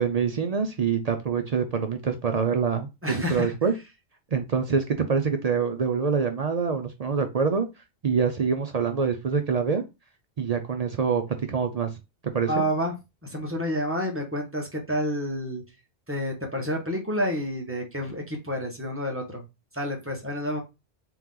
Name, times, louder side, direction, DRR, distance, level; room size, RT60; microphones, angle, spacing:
voice 1, 0.0-3.7 4.3-7.7 8.0-9.8 10.4-11.9 12.2-12.6, right 6 dB, 50° right, 0.5 m, -25 dB
voice 2, 3.0-3.5 12.5-12.9 13.2-15.6 16.1-19.4 19.7-20.6, equal, 15° right, 1.0 m, -29 dB
3.8 x 3.0 x 3.7 m
omnidirectional pair, 1.1 m